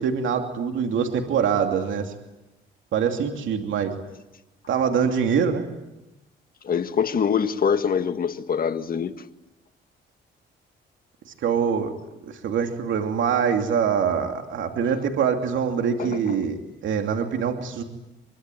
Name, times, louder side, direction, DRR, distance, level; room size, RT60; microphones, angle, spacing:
voice 1, 0.0-2.1 2.9-3.9 4.7-5.7 11.4-11.9 12.2-16.6 16.8-17.8, right 7 dB, 75° right, 2.8 m, -24 dB
voice 2, 6.6-9.1 16.0-16.2, left 7 dB, 45° left, 1.7 m, -24 dB
24.0 x 24.0 x 9.2 m
cardioid pair, 90°, 20 cm